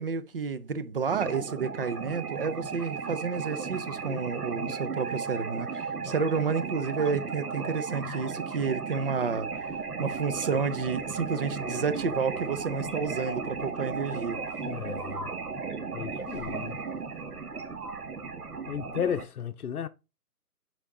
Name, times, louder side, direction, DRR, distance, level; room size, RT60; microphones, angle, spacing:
voice 1, 0.0-9.5 10.0-14.4, right 5 dB, 40° right, 0.6 m, -30 dB
sound 1, 1.1-19.2, right 5 dB, 75° right, 2.0 m, -35 dB
sound 2, 9.4-19.2, left 1 dB, 5° right, 2.4 m, -53 dB
voice 2, 14.7-15.3 15.9-16.8 18.7-19.9, left 8 dB, 70° left, 0.7 m, -34 dB
8.7 x 5.1 x 3.7 m
figure-of-eight pair, 150°, 46 cm